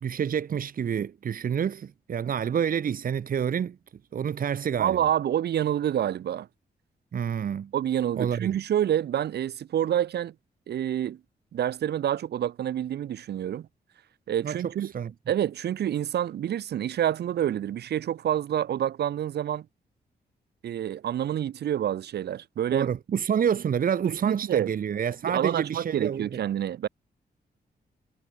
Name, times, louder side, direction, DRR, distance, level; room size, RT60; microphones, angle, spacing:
voice 1, 0.0-3.8 4.1-5.1 7.1-7.7 8.2-8.6 14.4-15.1 22.7-26.4, right 8 dB, 60° right, 2.0 m, -28 dB
voice 2, 4.8-6.5 7.7-10.3 10.7-11.2 11.5-13.7 14.3-14.9 15.3-19.7 20.6-22.9 24.0-24.7 25.2-26.9, right 10 dB, 80° right, 1.0 m, -27 dB
wide cardioid pair, 150°, 17 cm